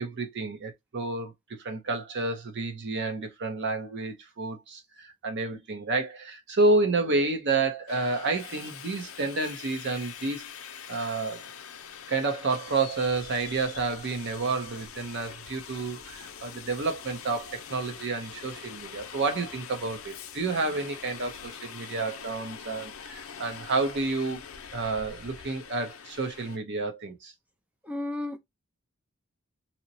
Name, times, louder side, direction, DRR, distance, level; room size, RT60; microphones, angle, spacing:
voice 1, 0.0-1.3 1.6-10.5 10.9-11.4 12.1-24.4 24.7-27.3, right 3 dB, 55° right, 0.7 m, -30 dB
Subway metro underground, 7.9-26.6, left 7 dB, 75° left, 0.5 m, -44 dB
voice 2, 27.8-28.4, left 2 dB, 5° right, 0.5 m, -32 dB
2.8 x 2.1 x 2.6 m
head